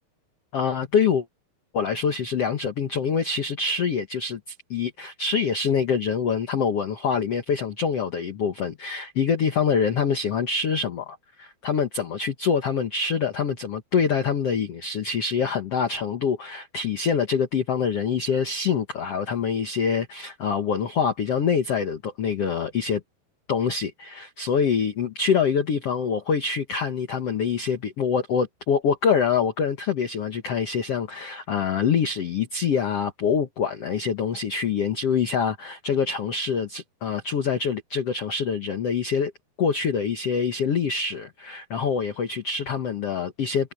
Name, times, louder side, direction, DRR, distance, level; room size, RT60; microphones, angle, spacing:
voice 1, 0.5-1.2 1.7-23.0 23.5-39.3 39.6-43.7, left 6 dB, 90° left, 1.3 m, -25 dB
omnidirectional pair, 5.0 m